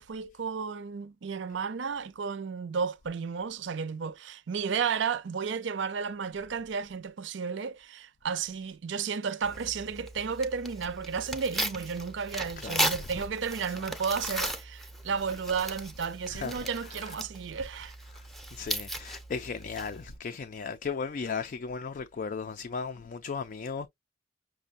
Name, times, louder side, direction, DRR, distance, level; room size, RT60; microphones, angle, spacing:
voice 1, 0.0-17.9, right 6 dB, 75° right, 0.5 m, -33 dB
Tearing, 9.4-20.2, right 1 dB, ahead, 0.6 m, -37 dB
voice 2, 18.1-23.9, left 5 dB, 45° left, 0.4 m, -36 dB
6.0 x 2.1 x 2.5 m
head